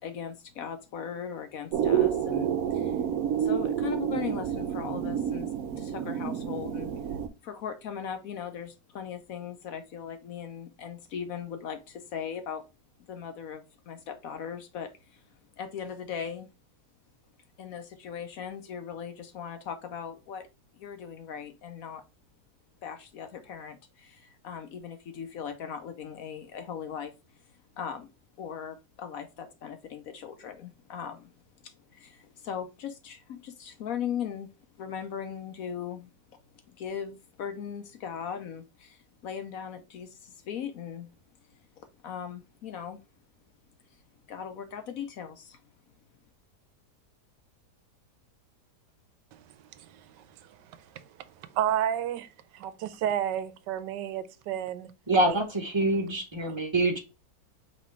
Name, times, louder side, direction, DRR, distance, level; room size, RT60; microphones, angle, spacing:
voice 1, 0.0-3.0 3.4-5.5 5.8-6.9 7.4-12.7 13.1-16.5 17.6-20.5 20.7-22.0 22.8-28.1 28.4-31.3 31.6-34.5 34.8-36.1 36.7-41.1 41.8-43.0 44.3-45.6, left 8 dB, 65° left, 1.0 m, -39 dB
sound 1, 1.7-7.3, right 9 dB, 65° right, 0.9 m, -29 dB
voice 2, 49.8-51.0 51.5-52.3 52.5-54.9, right 10 dB, 90° right, 1.2 m, -31 dB
voice 3, 55.1-57.0, right 1 dB, 30° right, 0.5 m, -25 dB
5.4 x 3.0 x 3.1 m
omnidirectional pair, 1.8 m